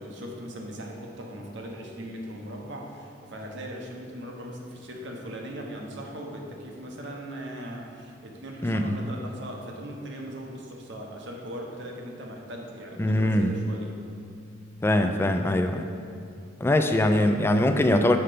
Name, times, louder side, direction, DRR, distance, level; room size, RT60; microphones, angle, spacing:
voice 1, 0.0-14.0, equal, 65° right, 0 dB, 1.0 m, -39 dB
voice 2, 8.6-9.0 13.0-13.5 14.8-15.9 16.6-18.2, left 1 dB, 10° left, 6 dB, 0.3 m, -22 dB
5.8 x 5.5 x 5.0 m, 2.4 s
head